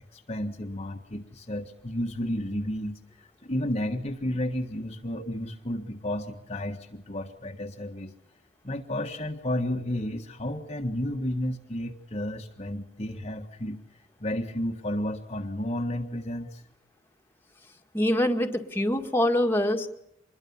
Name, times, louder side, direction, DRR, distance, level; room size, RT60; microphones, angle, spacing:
voice 1, 0.0-8.1 8.6-13.8 14.2-16.6, left 1 dB, 35° left, 2 dB, 1.5 m, -32 dB
voice 2, 17.9-19.9, left 1 dB, 10° left, 3 dB, 2.0 m, -24 dB
26.0 x 22.0 x 7.2 m, 0.80 s
head